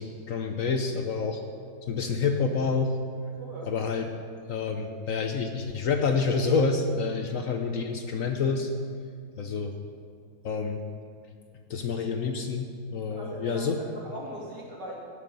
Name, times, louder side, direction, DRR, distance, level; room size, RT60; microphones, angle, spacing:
voice 1, 0.0-1.4 1.9-2.9 3.7-4.1 4.5-8.7 9.4-9.7 10.4-10.8 11.7-13.8, left 4 dB, 60° left, 5 dB, 1.0 m, -28 dB
voice 2, 3.3-3.7 13.1-14.9, equal, 75° right, -3 dB, 2.9 m, -40 dB
16.0 x 6.7 x 5.4 m, 2.2 s
omnidirectional pair, 1.9 m